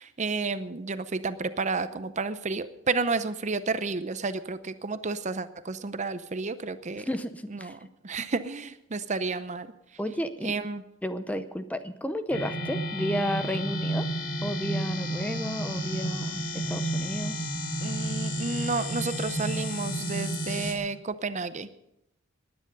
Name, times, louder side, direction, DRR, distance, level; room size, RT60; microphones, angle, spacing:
voice 1, 0.0-7.1 7.5-9.7 10.4-10.8 17.8-21.7, right 4 dB, 35° right, 13 dB, 0.7 m, -31 dB
voice 2, 6.9-7.7 10.0-10.5 11.0-14.1 14.4-17.5, equal, 5° left, 11 dB, 0.6 m, -32 dB
sound 1, 12.3-20.7, right 1 dB, 65° left, 2.6 m, -31 dB
19.5 x 9.9 x 5.3 m, 0.80 s
head